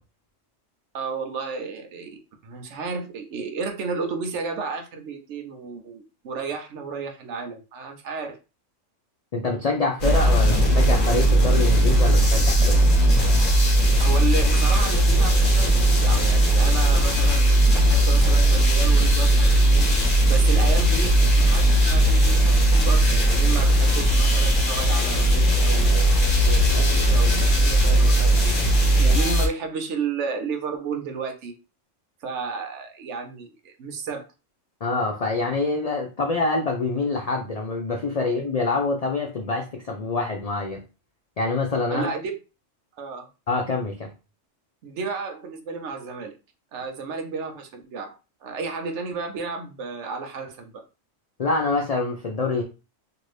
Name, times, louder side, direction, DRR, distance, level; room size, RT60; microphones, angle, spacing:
voice 1, 0.9-8.4 14.0-26.1 26.4-31.6 32.2-34.3 41.9-42.4 43.0-43.3 44.8-46.4 46.7-50.8, right 5 dB, 70° right, 0.9 m, -32 dB
voice 2, 9.3-13.0 26.8-26.9 34.8-40.8 41.4-42.1 43.5-44.1 51.4-52.6, left 3 dB, 60° left, 0.4 m, -26 dB
sound 1, 10.0-29.5, right 1 dB, 45° left, 1.2 m, -18 dB
2.8 x 2.6 x 3.2 m
omnidirectional pair, 1.3 m